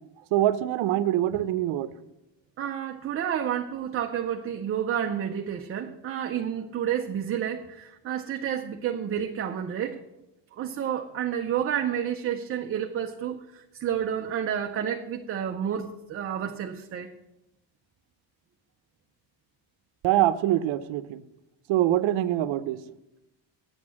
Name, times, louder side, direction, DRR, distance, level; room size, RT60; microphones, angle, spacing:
voice 1, 0.3-1.9 20.0-21.2 21.7-22.8, right 13 dB, 75° right, 12 dB, 0.7 m, -24 dB
voice 2, 2.6-10.0 10.6-13.4 13.8-17.1, right 9 dB, 30° right, 4 dB, 0.4 m, -30 dB
9.3 x 8.0 x 7.4 m, 0.92 s
cardioid pair, 175°, 47 cm